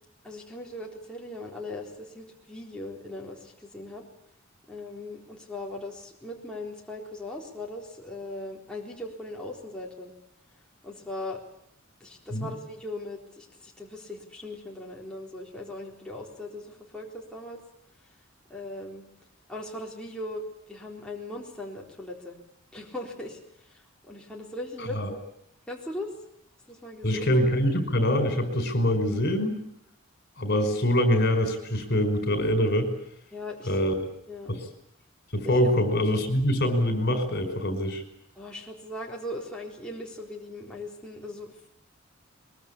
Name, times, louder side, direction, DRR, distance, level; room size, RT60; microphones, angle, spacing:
voice 1, 0.2-4.0 4.7-10.1 10.8-11.4 12.0-17.6 18.5-19.0 19.5-20.4 20.7-22.4 22.7-25.2 25.7-26.1 26.7-27.3 33.3-33.8 34.3-34.5 35.4-35.7 38.4-41.6, left 1 dB, 5° left, -2 dB, 3.9 m, -39 dB
voice 2, 27.0-29.6 30.4-32.9 33.7-34.0 34.5-34.6 35.3-38.0, equal, 50° left, 8 dB, 5.4 m, -24 dB
23.0 x 22.5 x 8.5 m, 0.75 s
head